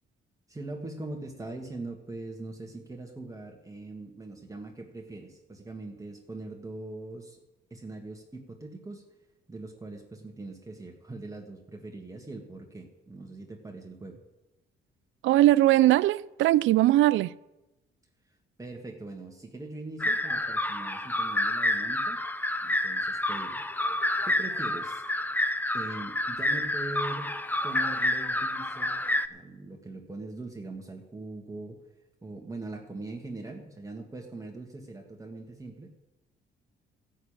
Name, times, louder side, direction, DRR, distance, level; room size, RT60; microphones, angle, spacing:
voice 1, 0.5-7.4 7.7-9.0 9.5-14.2 18.6-22.2 22.6-23.6 24.2-25.0 25.7-27.3 27.6-29.0 29.3-31.8 32.2-35.9, right 2 dB, 15° right, 1.7 m, -41 dB
voice 2, 15.2-17.3, right 15 dB, 80° right, 0.4 m, -20 dB
sound 1, 20.0-29.3, left 1 dB, 10° left, 0.6 m, -29 dB
14.5 x 6.5 x 8.8 m
cardioid pair, 90°, 20 cm